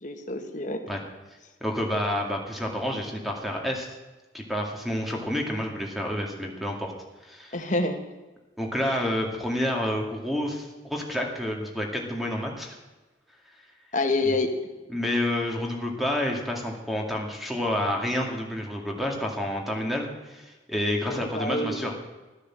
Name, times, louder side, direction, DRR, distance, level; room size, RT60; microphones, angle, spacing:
voice 1, 0.0-0.8 7.5-8.0 13.9-14.5 21.1-21.9, left 2 dB, 45° left, 5 dB, 1.6 m, -27 dB
voice 2, 1.6-3.9 4.3-6.9 7.2-7.6 8.6-12.8 14.2-14.3 14.9-21.9, left 1 dB, ahead, 0 dB, 2.1 m, -29 dB
14.0 x 9.9 x 7.5 m, 1.2 s
head